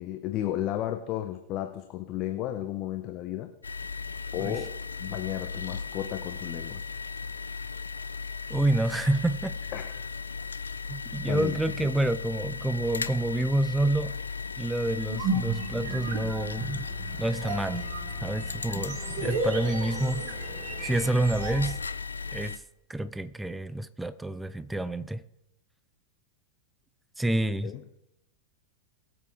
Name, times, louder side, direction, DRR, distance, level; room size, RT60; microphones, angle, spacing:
voice 1, 0.0-3.5 4.3-6.8 9.7-10.1 11.3-11.9 27.6-27.8, left 12 dB, 40° left, 0.9 m, -33 dB
sound 1, 3.6-22.6, left 5 dB, 75° left, 0.5 m, -36 dB
voice 2, 8.5-9.6 10.9-14.2 14.6-16.9 17.2-17.8 18.2-20.2 20.8-21.8 22.3-22.6 22.9-25.2 27.2-27.7, right 1 dB, 5° right, 0.5 m, -28 dB
sound 2, 15.0-21.7, right 3 dB, 45° right, 1.8 m, -35 dB
21.0 x 7.5 x 3.6 m
figure-of-eight pair, 90°, 0 cm